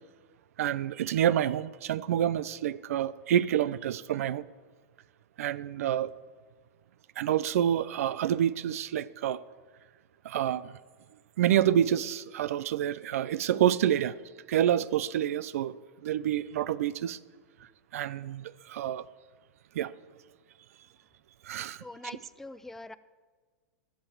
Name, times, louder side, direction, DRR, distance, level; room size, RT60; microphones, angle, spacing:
voice 1, 0.6-4.4 5.4-6.1 7.2-9.4 10.2-10.8 11.4-14.1 14.5-17.2 17.9-19.0 19.7-19.9 21.4-21.8, right 10 dB, 70° right, 18 dB, 0.6 m, -28 dB
voice 2, 21.8-22.9, left 2 dB, 5° left, 14 dB, 0.3 m, -43 dB
12.0 x 7.5 x 7.1 m, 1.5 s
supercardioid pair, 150°, 8 cm